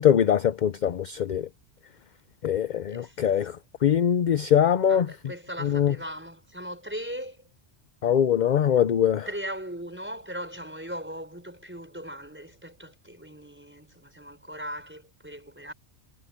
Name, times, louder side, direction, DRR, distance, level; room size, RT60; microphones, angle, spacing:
voice 1, 0.0-1.4 2.4-3.5 3.8-5.1 5.6-5.9 8.0-9.3, left 9 dB, 50° left, 0.6 m, -22 dB
voice 2, 4.9-7.4 9.2-15.7, equal, 10° right, 4.9 m, -38 dB
omnidirectional pair, 1.2 m